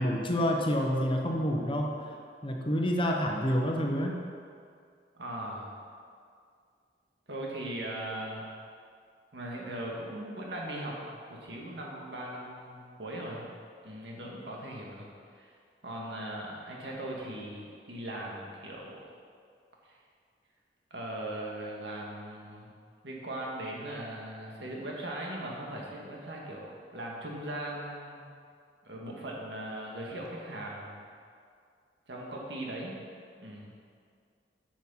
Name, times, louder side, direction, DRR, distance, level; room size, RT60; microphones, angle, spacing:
voice 1, 0.0-1.9 2.4-4.2, equal, 30° left, 1 dB, 0.9 m, -28 dB
voice 2, 5.1-5.8 7.3-8.5 9.3-13.5 13.8-15.1 15.3-15.5 15.8-19.0 19.9-20.0 20.9-22.7 23.0-28.3 28.8-31.0 32.1-33.0 33.4-33.7, right 1 dB, 85° right, -2 dB, 1.7 m, -39 dB
8.5 x 6.4 x 5.7 m, 2.2 s
head